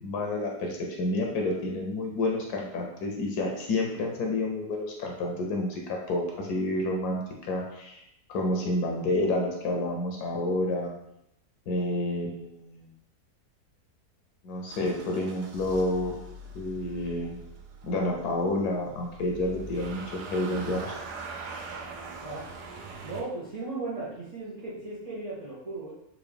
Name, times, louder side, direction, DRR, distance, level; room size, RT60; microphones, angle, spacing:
voice 1, 0.0-7.2 7.5-8.0 8.3-10.9 11.7-12.9 14.4-16.3 16.5-17.4 17.8-21.0, left 1 dB, 75° left, 1 dB, 1.1 m, -29 dB
Motor vehicle (road) / Engine starting, 14.7-23.2, right 3 dB, 85° right, 1.1 m, -42 dB
voice 2, 22.2-22.7 23.0-25.9, right 3 dB, 70° right, -8 dB, 0.3 m, -36 dB
3.8 x 2.3 x 3.3 m, 0.81 s
omnidirectional pair, 1.7 m